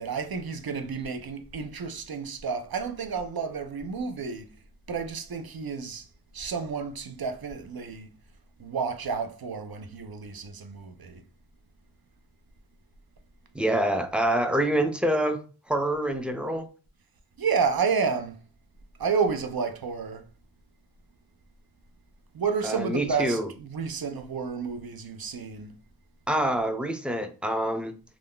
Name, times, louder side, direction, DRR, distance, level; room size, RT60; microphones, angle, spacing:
voice 1, 0.0-4.5 4.9-6.1 6.3-8.1 8.6-11.2 17.4-18.4 19.0-20.2 22.3-25.8, right 5 dB, 65° right, 0.5 m, -30 dB
voice 2, 13.5-15.4 15.7-16.7 22.6-23.5 26.3-28.0, right 1 dB, 5° right, 0.4 m, -26 dB
2.4 x 2.3 x 3.5 m
wide cardioid pair, 40°, 40 cm